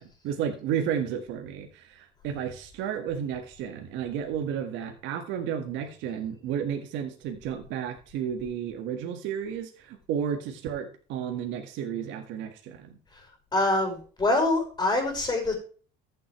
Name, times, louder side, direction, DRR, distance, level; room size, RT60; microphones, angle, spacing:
voice 1, 0.0-13.0, right 8 dB, 85° right, 5 dB, 1.7 m, -32 dB
voice 2, 13.5-15.5, left 2 dB, 20° left, 3 dB, 5.5 m, -25 dB
14.0 x 7.7 x 3.2 m, 0.39 s
cardioid pair, 115°, 19 cm